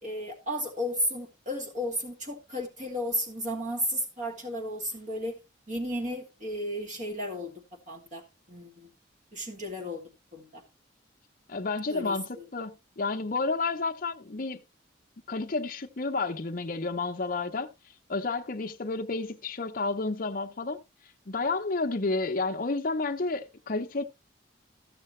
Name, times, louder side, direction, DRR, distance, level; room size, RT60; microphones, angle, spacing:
voice 1, 0.0-5.4 5.7-7.5 7.9-8.9 9.3-10.0 10.3-10.6 11.9-12.5, equal, 40° right, 2.5 m, -33 dB
voice 2, 11.5-14.6 15.3-17.7 18.1-20.8 21.3-24.0, left 3 dB, 45° left, 0.7 m, -31 dB
14.0 x 6.6 x 3.2 m
head